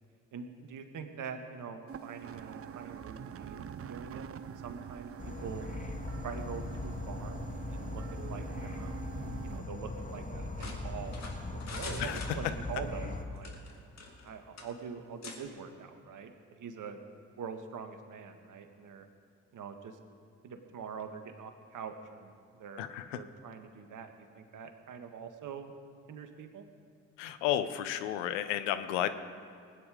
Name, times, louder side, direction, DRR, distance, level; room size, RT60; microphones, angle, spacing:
voice 1, 0.3-4.3 4.6-5.6 6.2-7.4 7.7-9.1 9.4-11.1 11.4-13.5 14.2-17.0 17.4-19.1 19.5-20.0 20.4-22.3 22.6-25.7 26.1-26.7, right 6 dB, 60° right, 7 dB, 1.6 m, -44 dB
sound 1, 1.9-9.6, right 8 dB, 40° right, 0.8 m, -45 dB
Insect / Frog, 5.2-13.3, left 2 dB, 20° left, 1.8 m, -39 dB
sound 2, 10.6-12.8 13.4-14.3 14.6-14.7 15.2-15.4, left 4 dB, 45° left, 2.6 m, -44 dB
voice 2, 12.0-12.4 22.8-23.2 27.2-29.1, left 11 dB, 80° left, 11 dB, 0.8 m, -32 dB
20.0 x 9.5 x 5.0 m, 2.3 s
hypercardioid pair, 45°, 36 cm